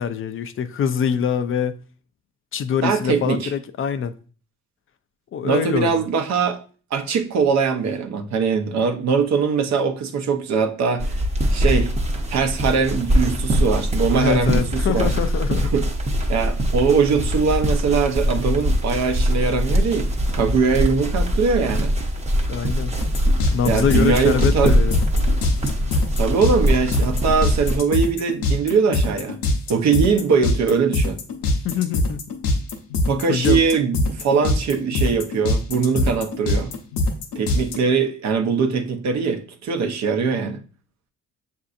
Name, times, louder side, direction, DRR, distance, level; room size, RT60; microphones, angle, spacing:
voice 1, 0.0-1.8 2.5-4.1 5.3-6.1 14.1-15.7 22.5-23.0 23.5-25.0 31.6-32.2 33.3-33.6, left 7 dB, 45° left, 0.4 m, -24 dB
voice 2, 2.8-3.5 5.4-6.6 6.9-11.2 11.5-11.9 12.3-15.1 15.7-15.8 16.3-21.9 23.6-24.7 26.2-29.4 29.7-31.2 33.1-36.7 37.4-40.6, right 5 dB, 65° right, 0.7 m, -21 dB
sound 1, 11.0-27.8, equal, 20° right, 0.8 m, -22 dB
sound 2, 23.0-37.8, left 2 dB, 85° left, 0.8 m, -22 dB
6.6 x 2.7 x 2.5 m
cardioid pair, 90°, 30 cm